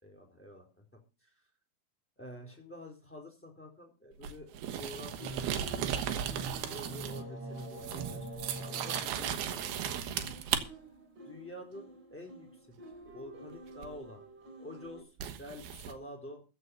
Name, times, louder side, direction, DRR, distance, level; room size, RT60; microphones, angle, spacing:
voice 1, 0.0-1.5 2.2-6.2 6.5-8.2 8.6-10.3 11.2-12.8 13.1-14.2 14.6-16.5, left 1 dB, 5° left, 2 dB, 3.2 m, -49 dB
sound 1, 4.2-7.3 7.6-10.6 13.8-13.9 15.2-15.9, right 9 dB, 80° right, 3.0 m, -36 dB
sound 2, 5.2-15.0, right 1 dB, 30° right, 4.8 m, -46 dB
15.0 x 5.5 x 8.2 m, 0.34 s
omnidirectional pair, 4.4 m